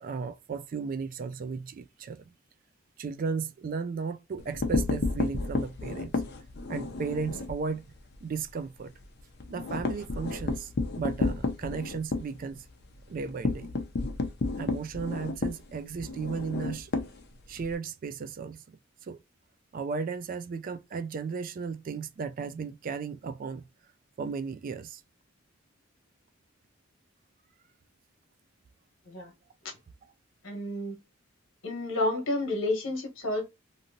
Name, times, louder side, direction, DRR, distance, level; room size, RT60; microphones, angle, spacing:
voice 1, 0.0-2.3 3.0-6.2 6.7-7.9 8.2-8.9 9.5-12.6 13.1-13.7 14.6-16.9 17.5-18.8 19.0-19.2 19.7-23.6 24.2-25.0, right 5 dB, 45° right, 0.3 m, -35 dB
sound 1, 4.4-7.6 8.0-8.1 8.4-8.5 8.9-17.7, left 3 dB, 55° left, 0.5 m, -31 dB
voice 2, 30.4-31.0 31.6-33.4, left 2 dB, 70° left, 1.1 m, -30 dB
2.9 x 2.6 x 2.6 m
head